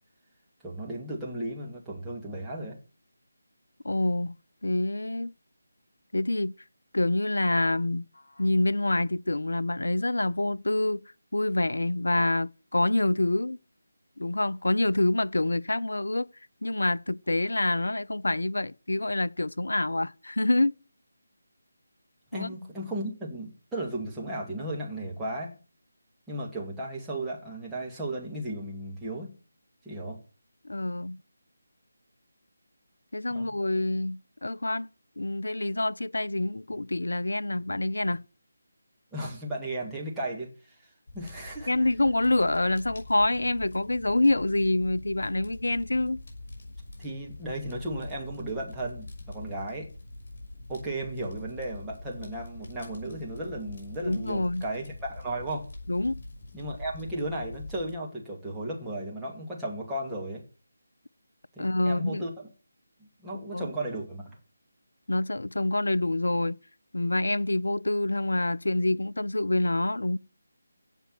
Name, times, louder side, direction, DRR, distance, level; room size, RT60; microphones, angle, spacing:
voice 1, 0.6-2.8 22.3-25.5 26.3-29.3 29.8-30.2 33.3-33.5 39.1-40.5 41.1-41.7 47.0-49.9 50.7-55.7 56.5-60.4 61.6-62.5 63.0-64.4, right 1 dB, 5° right, 2.5 m, -35 dB
voice 2, 3.8-4.4 4.6-5.3 6.1-6.6 6.9-8.1 8.4-11.0 11.3-13.6 14.2-16.3 16.6-20.7 22.3-22.5 30.6-31.2 33.1-34.9 35.2-38.2 41.7-46.2 54.0-54.7 55.9-56.2 61.6-62.2 63.5-63.7 65.1-66.6 66.9-70.2, left 2 dB, 65° left, 0.6 m, -26 dB
Fire, 41.1-57.9, left 2 dB, 40° left, 6.2 m, -44 dB
16.5 x 5.5 x 9.2 m
figure-of-eight pair, 155°, 0 cm